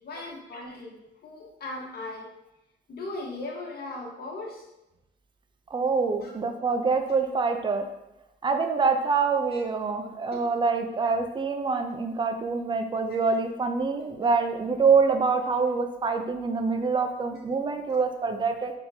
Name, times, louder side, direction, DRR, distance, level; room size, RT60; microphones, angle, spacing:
voice 1, 0.0-2.3 2.9-4.7 6.2-6.3 9.5-9.6 10.3-10.4 10.8-10.9 17.9-18.0, left 2 dB, 50° left, -1 dB, 1.2 m, -38 dB
voice 2, 5.7-7.9 8.4-18.7, right 4 dB, 25° right, 5 dB, 0.5 m, -25 dB
4.4 x 3.6 x 2.7 m, 0.91 s
cardioid pair, 90°, 20 cm